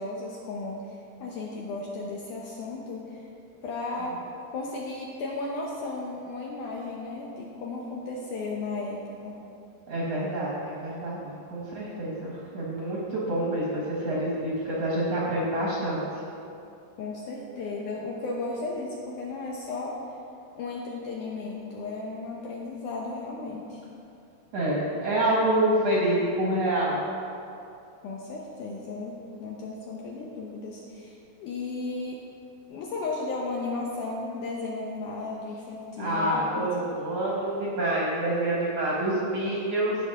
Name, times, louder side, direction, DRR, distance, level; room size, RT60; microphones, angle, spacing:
voice 1, 0.0-3.3 3.6-4.2 4.5-9.4 17.0-20.0 20.6-23.8 28.0-32.2 32.7-36.7, left 3 dB, 75° left, -3 dB, 1.9 m, -35 dB
voice 2, 9.9-16.0 24.5-27.0 36.0-40.0, right 1 dB, 60° right, -5 dB, 1.7 m, -27 dB
15.5 x 6.0 x 3.6 m, 2.6 s
omnidirectional pair, 4.4 m